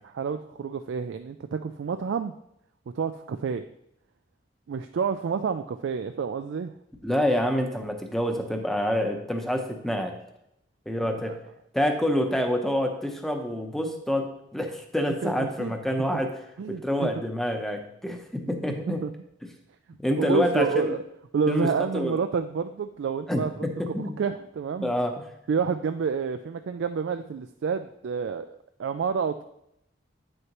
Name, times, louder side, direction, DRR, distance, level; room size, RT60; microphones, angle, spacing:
voice 1, 0.0-2.3 2.9-3.7 4.7-6.7 11.0-11.4 15.2-15.7 16.6-17.1 18.9-19.1 20.2-21.0 21.3-24.9 25.5-29.4, right 6 dB, 65° right, 8 dB, 0.3 m, -29 dB
voice 2, 7.0-10.2 10.9-11.3 11.7-16.4 16.7-19.0 20.0-20.9 21.5-21.7 21.9-22.2 23.3-24.1 24.8-25.3, left 1 dB, ahead, 4 dB, 0.7 m, -27 dB
9.2 x 6.5 x 3.0 m, 0.79 s
head